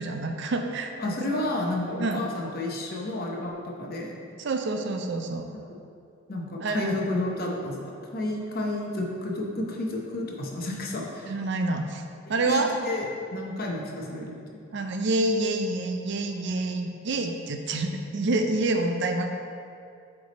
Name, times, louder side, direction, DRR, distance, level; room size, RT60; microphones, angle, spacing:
voice 1, 0.0-0.9 1.3-1.4 2.0-2.2 4.4-5.4 6.6-7.0 11.3-12.0 12.3-12.7 14.7-19.3, right 2 dB, 55° right, 5 dB, 0.4 m, -27 dB
voice 2, 1.0-4.2 5.5-5.6 6.3-11.3 12.3-13.0 13.3-14.6, left 1 dB, 45° left, -1 dB, 0.8 m, -31 dB
7.9 x 3.3 x 4.1 m, 2.4 s
head